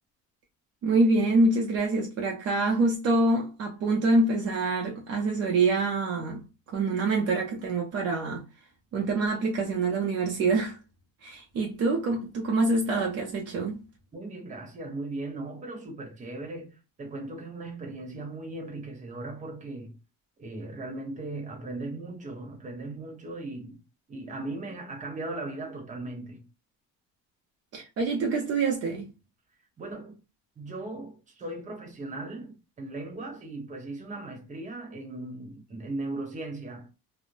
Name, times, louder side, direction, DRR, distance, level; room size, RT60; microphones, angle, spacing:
voice 1, 0.8-8.4 8.9-10.8 11.2-13.8 27.7-29.1, right 2 dB, 50° right, 0.6 m, -26 dB
voice 2, 14.1-20.0 20.4-23.8 24.1-26.4 29.8-30.2 30.6-36.9, right 2 dB, 25° right, 0.9 m, -38 dB
3.1 x 2.0 x 2.5 m
cardioid pair, 175°, 32 cm